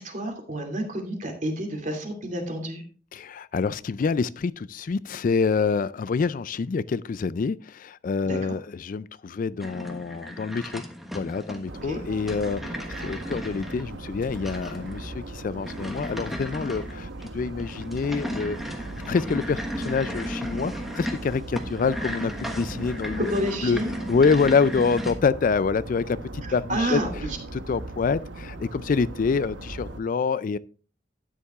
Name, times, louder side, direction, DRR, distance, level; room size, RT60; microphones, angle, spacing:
voice 1, 0.0-2.8 8.2-8.6 11.8-12.0 23.2-24.1 26.4-27.4, right 1 dB, 45° right, 2.6 m, -30 dB
voice 2, 3.1-10.8 11.1-18.6 19.1-23.3 23.6-23.8 24.1-27.0 27.7-30.6, left 5 dB, 45° left, 0.3 m, -26 dB
sound 1, 9.6-25.1, equal, ahead, 1.3 m, -36 dB
sound 2, 11.7-30.0, right 2 dB, 80° right, 1.1 m, -39 dB
12.5 x 10.0 x 2.4 m
head